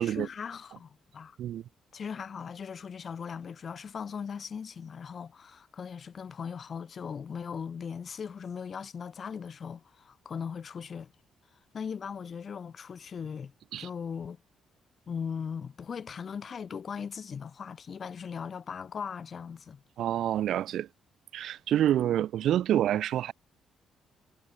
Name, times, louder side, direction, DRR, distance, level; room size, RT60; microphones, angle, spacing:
voice 1, 0.0-1.4 1.9-11.1 11.7-14.4 15.1-19.8, left 6 dB, 45° left, 7.5 m, -39 dB
voice 2, 20.0-20.9 21.3-23.3, right 11 dB, 75° right, 0.5 m, -27 dB
cardioid pair, 90°, 0 cm